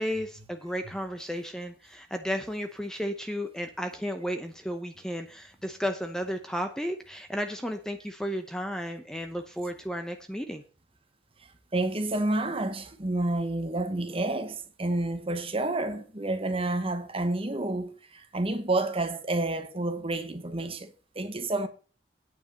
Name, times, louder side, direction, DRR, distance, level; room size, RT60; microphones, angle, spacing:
voice 1, 0.0-10.6, equal, 5° left, 0.8 m, -33 dB
voice 2, 11.4-21.7, right 2 dB, 30° right, 1.1 m, -30 dB
9.1 x 5.5 x 7.0 m
head